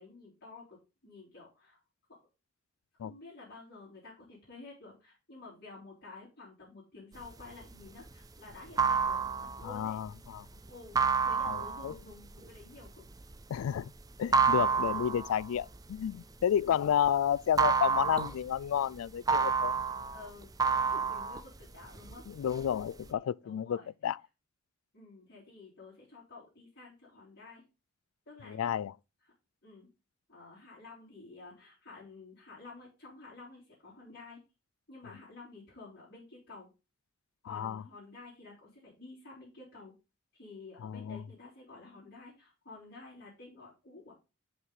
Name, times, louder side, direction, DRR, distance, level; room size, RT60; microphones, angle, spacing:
voice 1, 0.0-1.8 3.0-10.0 10.7-13.0 14.8-15.0 16.6-16.9 20.1-22.2 23.1-23.9 24.9-27.6 28.3-28.7 29.6-29.9 30.3-34.4 34.9-36.7 37.4-39.9 40.3-44.1, left 3 dB, 55° left, 4.3 m, -51 dB
sound 1, 7.3-17.1 17.4-22.1 22.5-23.1, right 5 dB, 20° right, 0.5 m, -30 dB
voice 2, 9.6-10.5 11.4-11.9 13.5-13.9 14.2-19.8 22.3-24.2 28.5-28.9 37.5-37.8 40.8-41.2, left 9 dB, 85° left, 0.3 m, -31 dB
6.1 x 5.9 x 5.6 m
head